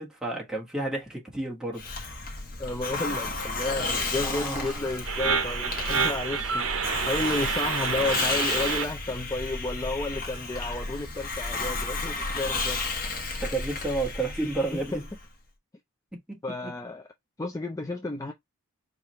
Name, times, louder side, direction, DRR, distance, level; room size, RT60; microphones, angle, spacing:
voice 1, 0.0-1.9 4.2-5.1 13.4-15.0 16.1-16.7, right 2 dB, 5° right, 1.3 m, -32 dB
Hiss, 1.8-15.3, left 3 dB, 40° left, 1.0 m, -33 dB
voice 2, 2.6-12.8 13.3-13.4 14.7-15.0 16.4-17.1 17.4-18.3, left 2 dB, 15° left, 0.4 m, -32 dB
sound 1, 5.0-8.8, right 6 dB, 70° right, 0.7 m, -28 dB
4.9 x 2.5 x 3.0 m
head